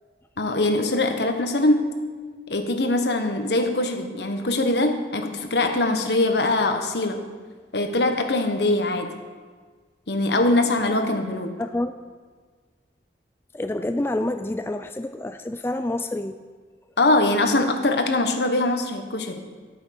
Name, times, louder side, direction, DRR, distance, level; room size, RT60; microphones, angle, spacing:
voice 1, 0.4-1.9 2.5-7.2 7.7-9.1 10.1-11.6 17.0-19.4, left 2 dB, 75° left, 5 dB, 1.3 m, -22 dB
voice 2, 11.6-11.9 13.5-16.4, left 1 dB, 15° left, 8 dB, 0.3 m, -28 dB
12.5 x 8.7 x 6.0 m, 1.5 s
head